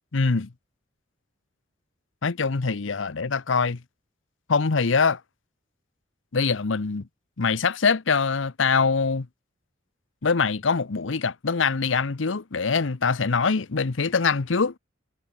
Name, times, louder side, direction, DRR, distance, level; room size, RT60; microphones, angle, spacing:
voice 1, 0.1-0.5 2.2-3.8 4.5-5.2 6.3-7.1 7.4-9.3 10.2-14.7, left 5 dB, 75° left, 0.8 m, -23 dB
head